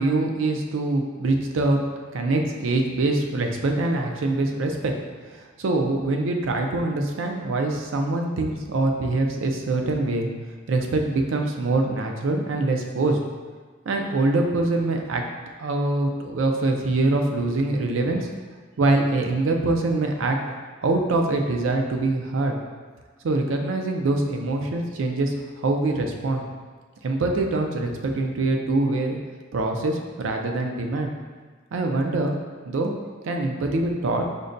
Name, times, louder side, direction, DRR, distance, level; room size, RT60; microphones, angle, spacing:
voice 1, 0.0-1.8 2.1-4.9 5.3-10.3 10.7-13.2 13.9-15.2 15.6-18.3 18.8-20.4 20.8-22.6 23.2-25.3 25.6-26.4 27.0-29.2 29.5-31.1 31.7-32.4 32.7-32.9 33.2-34.3, right 2 dB, 80° right, 3 dB, 0.4 m, -24 dB
5.1 x 2.2 x 2.5 m, 1.4 s
head